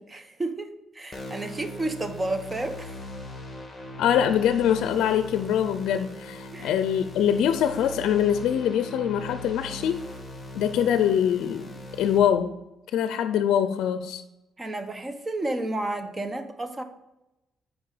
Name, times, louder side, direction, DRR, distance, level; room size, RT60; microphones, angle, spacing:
voice 1, 0.1-3.0 6.5-6.7 14.6-16.8, right 2 dB, 25° right, 8 dB, 0.9 m, -31 dB
sound 1, 1.1-12.2, left 1 dB, 15° left, 2.0 m, -40 dB
voice 2, 4.0-10.0 10.5-11.7 12.0-12.5 12.9-14.2, left 9 dB, 80° left, 10 dB, 0.4 m, -23 dB
8.8 x 5.1 x 4.9 m, 0.94 s
cardioid pair, 90°, 0 cm